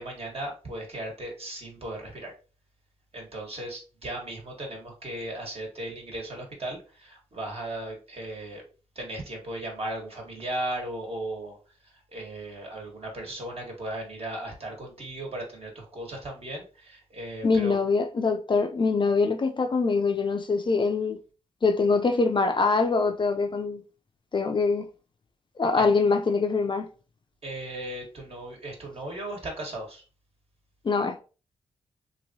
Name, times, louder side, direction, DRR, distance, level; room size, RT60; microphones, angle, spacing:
voice 1, 0.0-2.3 3.1-8.6 8.9-11.6 11.8-17.8 27.4-30.0, right 1 dB, 50° right, 1.4 m, -36 dB
voice 2, 17.4-21.2 21.6-23.8 24.3-24.9 25.6-26.9 30.8-31.2, left 4 dB, 40° left, 0.4 m, -24 dB
2.9 x 2.6 x 2.7 m
cardioid pair, 50°, 13 cm